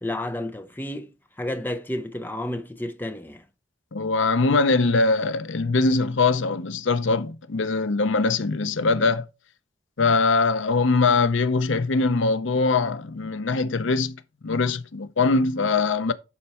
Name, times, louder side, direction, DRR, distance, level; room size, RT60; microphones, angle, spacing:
voice 1, 0.0-3.4, left 1 dB, 10° left, 0.7 m, -31 dB
voice 2, 3.9-9.2 10.0-14.2 14.4-16.1, left 3 dB, 80° left, 0.7 m, -22 dB
11.5 x 4.6 x 4.3 m
head